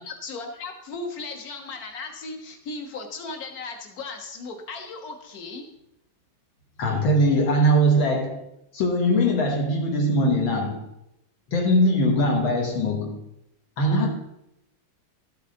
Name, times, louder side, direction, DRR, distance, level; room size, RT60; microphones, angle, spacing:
voice 1, 0.0-5.7, left 3 dB, 50° left, 4 dB, 1.7 m, -36 dB
voice 2, 6.8-8.4 8.7-10.9 11.5-13.2 13.8-14.1, equal, 70° left, 0 dB, 2.2 m, -21 dB
13.0 x 8.2 x 3.8 m, 0.82 s
omnidirectional pair, 2.3 m